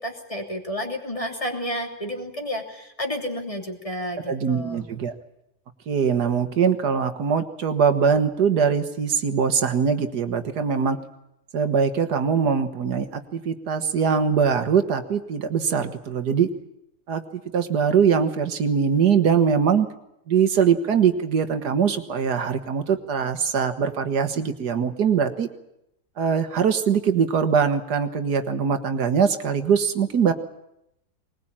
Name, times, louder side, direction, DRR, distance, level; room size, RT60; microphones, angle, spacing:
voice 1, 0.0-4.9, equal, 20° left, 2 dB, 3.2 m, -31 dB
voice 2, 4.3-5.1 5.9-11.0 11.5-16.5 17.1-17.2 17.5-19.9 20.3-25.5 26.2-30.3, right 6 dB, 80° right, 9 dB, 1.9 m, -22 dB
21.0 x 21.0 x 8.7 m, 0.83 s
omnidirectional pair, 1.7 m